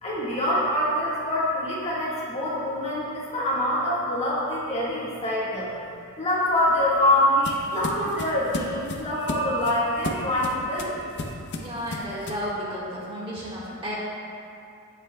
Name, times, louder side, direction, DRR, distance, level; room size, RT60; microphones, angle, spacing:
voice 1, 0.0-5.7 6.2-11.3, left 1 dB, 30° left, -7 dB, 1.7 m, -25 dB
sound 1, 6.5-12.5, left 2 dB, 50° left, 0.6 m, -35 dB
voice 2, 11.6-14.0, equal, 25° right, -6 dB, 1.7 m, -32 dB
16.0 x 5.8 x 2.3 m, 2.5 s
head